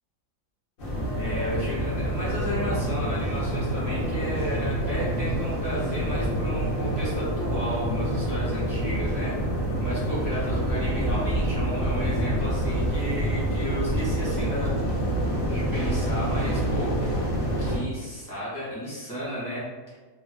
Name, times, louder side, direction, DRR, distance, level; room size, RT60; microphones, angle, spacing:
sound 1, 0.8-17.8, right 1 dB, 60° left, 0.5 m, -27 dB
voice 1, 1.1-9.4 9.8-14.8 15.5-17.0 17.6-19.7, equal, 15° left, -10 dB, 0.7 m, -33 dB
2.7 x 2.1 x 2.3 m, 1.3 s
omnidirectional pair, 1.6 m